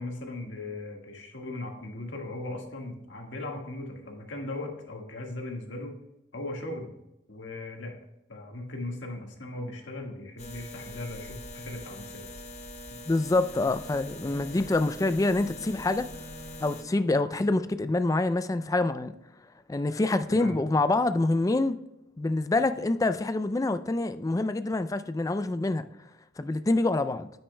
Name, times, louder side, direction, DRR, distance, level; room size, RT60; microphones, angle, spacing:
voice 1, 0.0-6.0 6.3-6.9 7.3-8.0 8.3-12.2 12.9-13.0 20.3-20.6, left 2 dB, 75° left, 1 dB, 1.6 m, -38 dB
sound 1, 10.4-16.8, left 1 dB, 35° left, 0.8 m, -43 dB
voice 2, 13.1-16.1 16.6-19.1 19.7-21.8 22.2-25.9 26.4-27.3, left 2 dB, 20° left, 11 dB, 0.3 m, -26 dB
Bowed string instrument, 14.0-17.9, equal, 10° right, 2.5 m, -48 dB
9.7 x 8.8 x 2.2 m, 0.90 s
head